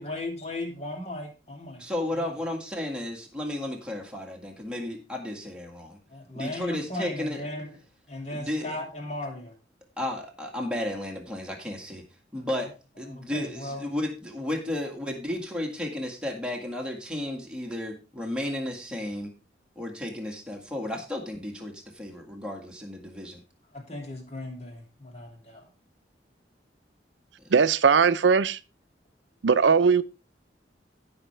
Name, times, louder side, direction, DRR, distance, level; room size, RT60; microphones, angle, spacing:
voice 1, 0.0-1.8 2.1-2.3 6.1-7.8 8.1-9.5 12.4-12.7 13.0-13.9 23.7-25.7, left 1 dB, 40° left, 2.7 m, -37 dB
voice 2, 1.8-6.0 6.3-7.4 8.3-8.7 10.0-12.0 12.3-12.7 13.0-19.3 19.7-23.4 27.4-27.5, left 1 dB, 5° right, 1.9 m, -33 dB
voice 3, 27.5-28.6 29.4-30.0, right 5 dB, 90° right, 0.5 m, -19 dB
16.5 x 5.8 x 3.3 m
head